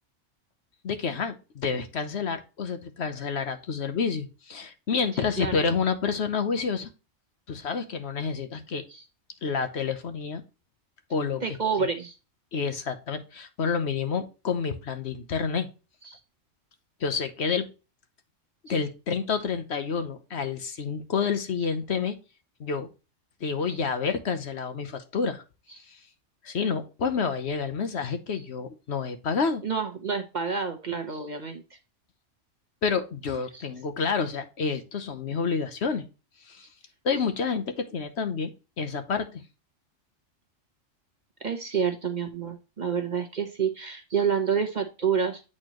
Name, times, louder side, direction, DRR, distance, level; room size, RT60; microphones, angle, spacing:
voice 1, 0.8-6.9 7.5-8.8 9.4-10.4 11.1-11.9 12.5-15.7 17.0-17.7 18.7-22.2 22.6-22.9 23.4-25.4 25.9-26.0 26.4-29.6 32.8-36.1 36.5-36.7 37.0-38.5 38.8-39.4, left 5 dB, 60° left, 8 dB, 1.1 m, -29 dB
voice 2, 11.4-12.1 16.1-16.2 18.7-18.8 23.7-23.8 29.6-31.6 33.5-33.6 41.4-45.4, right 6 dB, 40° right, 5 dB, 1.0 m, -28 dB
8.6 x 4.4 x 2.9 m, 0.30 s
omnidirectional pair, 1.3 m